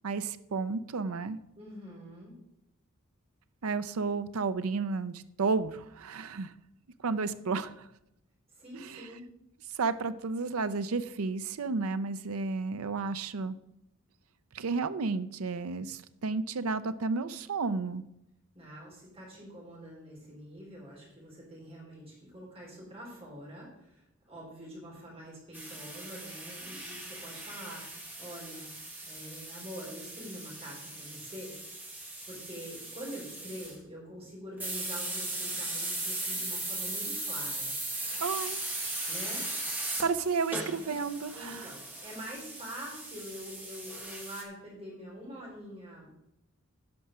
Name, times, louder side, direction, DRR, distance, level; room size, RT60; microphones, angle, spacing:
voice 1, 0.0-1.4 3.6-6.5 7.0-7.9 8.7-9.1 9.8-13.6 14.5-18.0 38.2-38.7 40.0-41.7, right 4 dB, 80° right, 12 dB, 0.6 m, -32 dB
voice 2, 1.6-2.4 8.5-9.2 18.5-28.7 29.0-31.5 32.3-37.7 39.1-39.5 41.3-46.1, equal, 25° right, -4 dB, 4.1 m, -45 dB
sound 1, 25.5-33.8 34.6-44.4, right 2 dB, 10° right, 1.5 m, -38 dB
10.5 x 5.6 x 6.2 m, 0.83 s
head